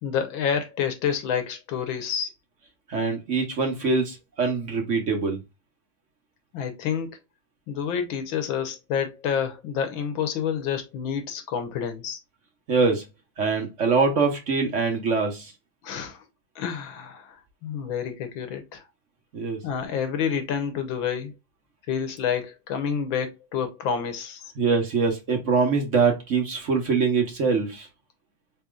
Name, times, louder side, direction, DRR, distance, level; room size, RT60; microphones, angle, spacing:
voice 1, 0.0-2.3 6.5-7.2 7.7-12.2 15.8-16.2 16.6-18.8 19.6-21.3 21.9-24.5, left 7 dB, 85° left, 1.7 m, -28 dB
voice 2, 2.9-5.4 12.7-13.0 13.4-15.5 19.3-19.6 24.6-27.9, right 4 dB, 45° right, 1.2 m, -23 dB
4.3 x 4.1 x 2.3 m
omnidirectional pair, 2.1 m